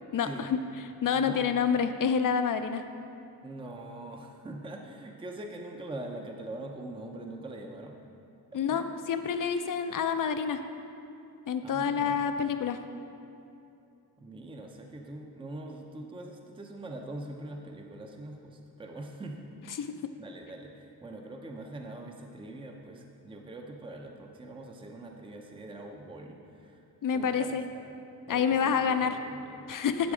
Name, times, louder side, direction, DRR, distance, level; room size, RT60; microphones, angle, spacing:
voice 1, 0.1-0.6 1.0-2.8 8.5-10.6 11.5-12.8 19.8-19.9 27.0-27.6 28.3-29.1 29.7-30.1, left 7 dB, 55° left, 9 dB, 0.5 m, -28 dB
voice 2, 1.1-1.5 3.4-8.0 8.7-8.9 11.6-12.2 14.2-19.8 20.2-26.8 27.1-27.9 28.3-29.7 30.0-30.1, right 2 dB, 15° right, 2 dB, 0.6 m, -43 dB
12.5 x 4.2 x 4.9 m, 2.8 s
wide cardioid pair, 115°, 39 cm